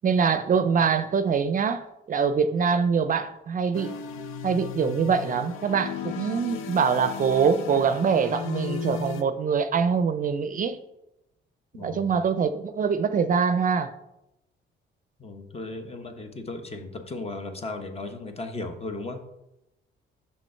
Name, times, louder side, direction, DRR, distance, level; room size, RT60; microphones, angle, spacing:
voice 1, 0.0-4.0 4.4-10.8 11.8-13.9, right 6 dB, 45° right, 11 dB, 0.5 m, -24 dB
sound 1, 3.7-9.2, left 6 dB, 90° left, 0.6 m, -35 dB
voice 2, 11.7-12.2 15.2-19.2, left 2 dB, 30° left, 6 dB, 1.1 m, -36 dB
6.1 x 5.7 x 4.4 m, 0.89 s
cardioid pair, 90°, 20 cm